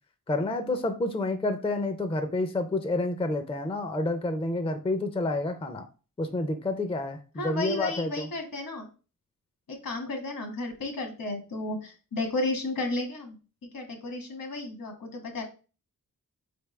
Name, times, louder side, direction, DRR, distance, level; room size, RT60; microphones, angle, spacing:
voice 1, 0.3-5.9 6.2-8.3, left 2 dB, 15° left, 7 dB, 0.4 m, -29 dB
voice 2, 7.4-8.9 9.7-13.4 13.6-15.4, left 2 dB, 70° left, 3 dB, 1.3 m, -33 dB
4.4 x 3.4 x 3.1 m, 0.34 s
wide cardioid pair, 120°, 35 cm